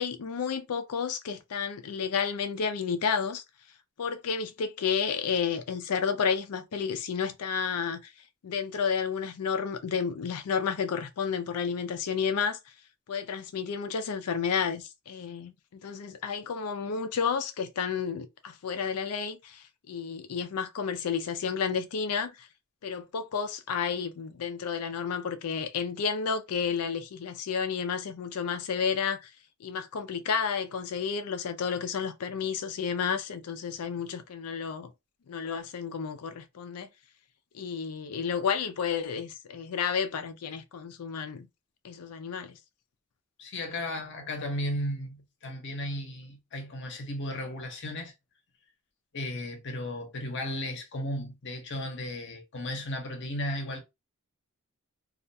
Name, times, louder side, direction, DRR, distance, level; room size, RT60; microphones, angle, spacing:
voice 1, 0.0-3.4 4.0-8.0 8.4-12.6 13.1-22.5 22.8-29.3 29.6-34.9 35.3-36.9 37.5-41.5 41.8-42.6, left 6 dB, 85° left, 0.4 m, -31 dB
voice 2, 43.4-48.1 49.1-53.8, left 1 dB, 55° left, 0.8 m, -35 dB
2.4 x 2.2 x 2.6 m
head